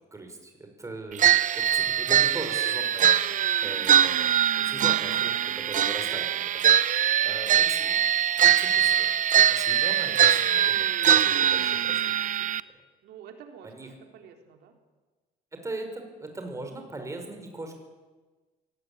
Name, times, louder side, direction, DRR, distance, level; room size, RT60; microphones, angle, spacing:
voice 1, 0.1-1.3 1.5-4.3 4.6-6.6 7.2-8.0 8.4-9.1 9.5-12.1 12.5-12.6 13.6-13.9 15.5-17.8, right 2 dB, 20° right, 4 dB, 5.8 m, -39 dB
sound 1, 1.2-12.6, right 10 dB, 50° right, 0.7 m, -22 dB
voice 2, 3.6-4.7 10.5-10.8 13.0-14.8, right 7 dB, 75° right, 4 dB, 3.8 m, -50 dB
23.0 x 18.5 x 8.9 m, 1.3 s
cardioid pair, 110°, 17 cm